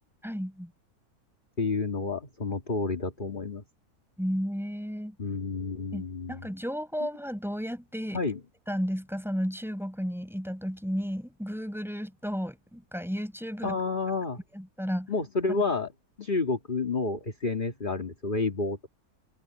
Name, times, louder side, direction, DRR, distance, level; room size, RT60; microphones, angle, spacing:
voice 1, 0.2-0.7 4.2-5.2 5.9-8.2 8.7-13.8 14.5-15.1, equal, ahead, 7.9 m, -33 dB
voice 2, 1.6-3.6 5.2-6.5 8.1-8.4 13.6-14.4 15.1-15.9 16.2-18.9, left 3 dB, 30° left, 2.2 m, -30 dB
omnidirectional pair, 1.6 m